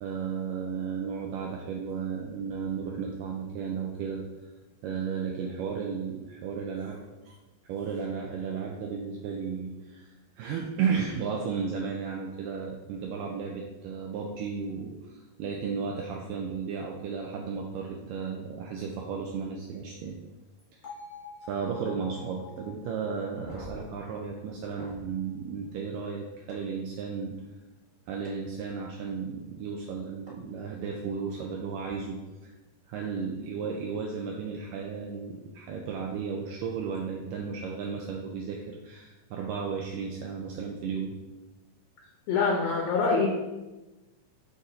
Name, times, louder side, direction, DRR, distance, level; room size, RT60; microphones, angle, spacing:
voice 1, 0.0-4.2 4.8-7.4 7.6-20.2 20.8-20.9 21.4-27.4 28.1-32.5 32.9-41.2, right 6 dB, 90° right, 0 dB, 1.9 m, -34 dB
Bell, 20.8-24.9, left 4 dB, 45° left, 2.1 m, -48 dB
sound 1, 23.4-25.1 26.5-26.6 28.2-28.3 30.3-30.4 31.7-31.9, right 1 dB, 35° right, 0.7 m, -46 dB
voice 2, 42.3-43.3, left 4 dB, 80° left, -1 dB, 2.4 m, -24 dB
7.0 x 6.4 x 2.6 m, 1.1 s
omnidirectional pair, 4.5 m